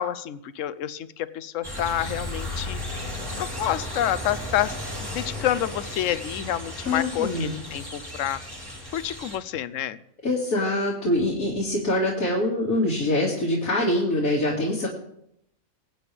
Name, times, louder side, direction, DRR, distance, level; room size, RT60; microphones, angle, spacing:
voice 1, 0.0-2.8 3.4-4.8 5.0-8.4 8.9-10.0, left 11 dB, 70° left, 15 dB, 1.0 m, -28 dB
sound 1, 1.6-9.4, left 1 dB, 15° right, 2.0 m, -35 dB
voice 2, 6.8-7.5 10.2-14.9, left 1 dB, 90° left, -4 dB, 2.7 m, -24 dB
22.0 x 9.0 x 3.4 m, 0.76 s
omnidirectional pair, 1.4 m